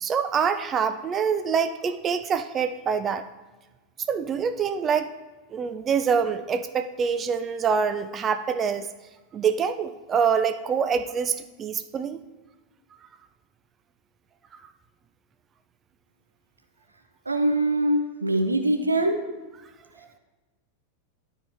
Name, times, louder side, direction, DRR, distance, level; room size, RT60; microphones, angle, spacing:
voice 1, 0.0-3.2 4.1-5.1 5.5-8.9 9.3-12.2, right 6 dB, 25° right, 11 dB, 0.4 m, -25 dB
voice 2, 17.3-19.2, right 1 dB, 80° right, 6 dB, 0.7 m, -23 dB
12.0 x 4.9 x 3.3 m, 1.2 s
figure-of-eight pair, 90°, 0 cm